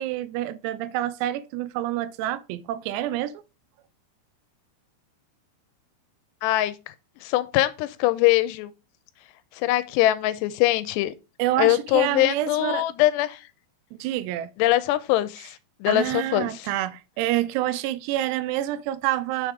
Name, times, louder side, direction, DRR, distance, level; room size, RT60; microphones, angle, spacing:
voice 1, 0.0-3.4 11.4-12.9 14.0-14.5 15.9-19.5, right 13 dB, 90° right, 2.7 m, -27 dB
voice 2, 6.4-6.8 7.2-8.7 9.6-11.1 11.6-13.4 14.6-16.6, left 15 dB, 85° left, 2.7 m, -22 dB
6.3 x 3.6 x 4.7 m
omnidirectional pair, 4.8 m